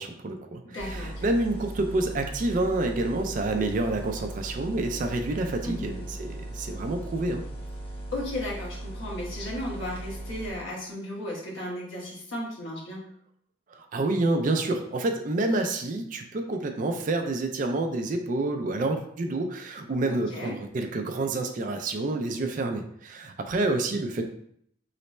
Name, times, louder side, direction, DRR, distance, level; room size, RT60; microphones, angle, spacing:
voice 1, 0.0-7.4 13.7-24.2, right 2 dB, 40° right, 5 dB, 0.3 m, -28 dB
voice 2, 0.6-1.3 5.6-6.0 8.1-13.0 20.1-20.5, left 1 dB, 75° left, -4 dB, 1.2 m, -35 dB
sound 1, 0.8-10.5, right 1 dB, 25° left, 0.8 m, -38 dB
3.2 x 2.0 x 4.1 m, 0.68 s
head